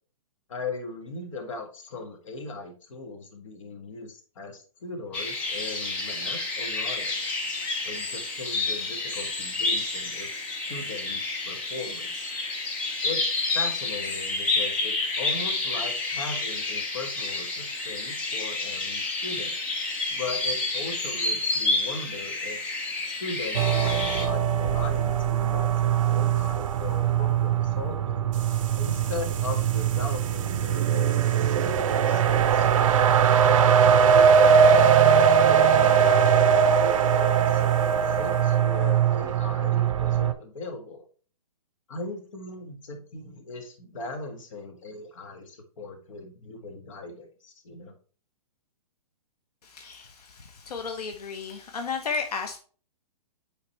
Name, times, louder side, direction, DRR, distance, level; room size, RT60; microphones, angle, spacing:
voice 1, 0.5-7.2 7.8-12.3 13.0-19.5 20.1-22.6 23.1-28.4 28.7-32.7 33.3-41.0 41.9-47.9, left 3 dB, 55° left, 5 dB, 1.6 m, -38 dB
sound 1, 5.1-24.3, left 3 dB, 10° left, 0.3 m, -29 dB
sound 2, 23.5-40.3, right 7 dB, 60° right, 0.6 m, -21 dB
voice 2, 49.6-52.6, left 5 dB, 85° left, 5 dB, 1.0 m, -33 dB
8.9 x 4.0 x 3.1 m, 0.40 s
hypercardioid pair, 165°, 19 cm